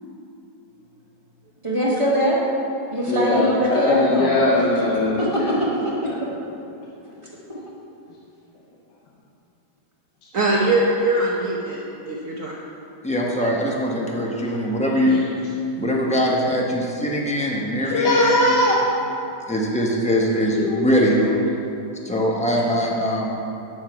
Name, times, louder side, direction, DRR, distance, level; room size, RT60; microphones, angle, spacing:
voice 1, 1.6-2.4 2.9-4.3 5.2-6.3 7.5-7.6, equal, 20° right, -6 dB, 1.4 m, -22 dB
voice 2, 3.1-5.5 15.0-15.2 17.9-18.8 20.1-21.1, left 2 dB, 80° left, -5 dB, 1.6 m, -21 dB
voice 3, 10.3-12.5, right 2 dB, 55° right, -4 dB, 1.1 m, -22 dB
voice 4, 13.0-15.2 15.8-18.2 18.5-18.6 19.5-21.2 22.0-23.3, equal, 5° left, -2 dB, 0.5 m, -22 dB
9.3 x 6.6 x 4.6 m, 2.9 s
omnidirectional pair, 1.8 m